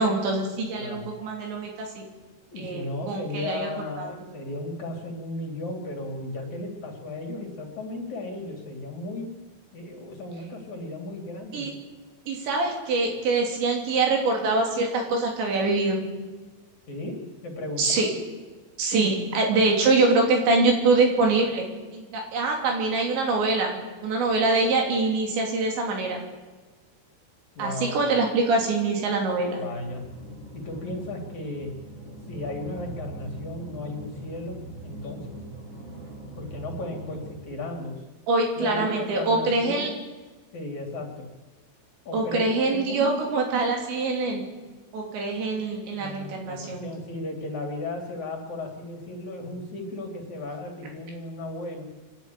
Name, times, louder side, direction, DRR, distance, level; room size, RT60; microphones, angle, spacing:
voice 1, 0.0-2.1 2.6-3.7 4.0-4.1 11.5-11.7 12.3-16.1 17.8-18.1 18.8-21.6 21.9-26.2 27.6-29.6 38.3-39.9 42.1-44.4 44.9-46.9, right 3 dB, 75° right, 1 dB, 5.3 m, -24 dB
voice 2, 0.8-1.1 2.5-9.3 9.7-11.8 16.9-17.2 17.4-18.1 27.6-28.1 29.5-30.1 30.5-31.7 32.3-35.4 36.4-38.0 38.6-39.9 40.5-41.3 42.1-43.3 45.9-51.8, left 2 dB, 45° left, 1 dB, 3.6 m, -35 dB
sound 1, 29.7-37.3, right 2 dB, 35° right, 3.9 m, -41 dB
26.0 x 11.5 x 9.2 m, 1.3 s
omnidirectional pair, 5.2 m